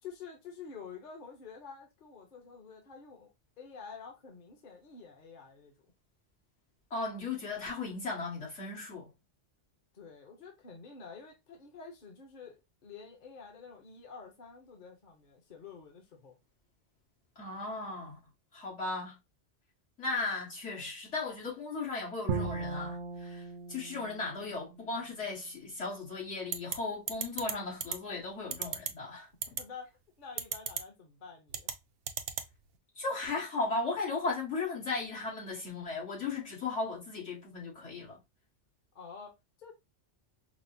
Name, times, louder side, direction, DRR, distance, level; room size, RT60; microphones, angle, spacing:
voice 1, 0.0-5.7 9.9-16.4 29.6-31.7 38.9-39.7, left 5 dB, 45° left, 1.0 m, -49 dB
voice 2, 6.9-9.1 17.4-18.2 18.5-19.2 20.0-29.3 33.0-38.2, left 3 dB, 75° left, 2.1 m, -36 dB
Bowed string instrument, 22.3-25.4, right 4 dB, 55° right, 0.6 m, -38 dB
sound 1, 26.5-26.8 27.1-27.5 27.8-28.0 28.5-28.9 29.4-29.6 30.4-30.8 31.5-31.7 32.1-32.5, right 8 dB, 85° right, 0.9 m, -33 dB
5.1 x 2.0 x 2.6 m
omnidirectional pair, 1.2 m